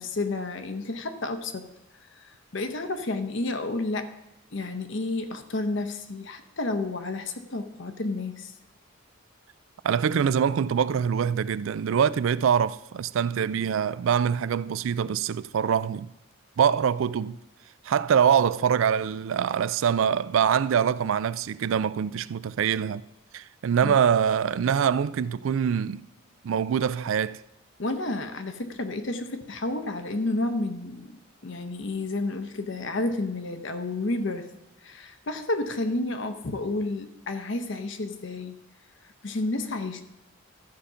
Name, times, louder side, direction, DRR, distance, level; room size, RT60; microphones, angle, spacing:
voice 1, 0.0-1.7 2.2-4.1 4.5-8.5 23.8-23.9 27.8-34.5 34.8-38.6 39.2-40.0, left 2 dB, 60° left, 0.8 m, -31 dB
voice 2, 9.8-16.1 16.6-17.4 17.8-23.0 23.3-26.0 26.4-27.4, right 7 dB, 70° right, 0.3 m, -24 dB
13.5 x 5.1 x 5.6 m
head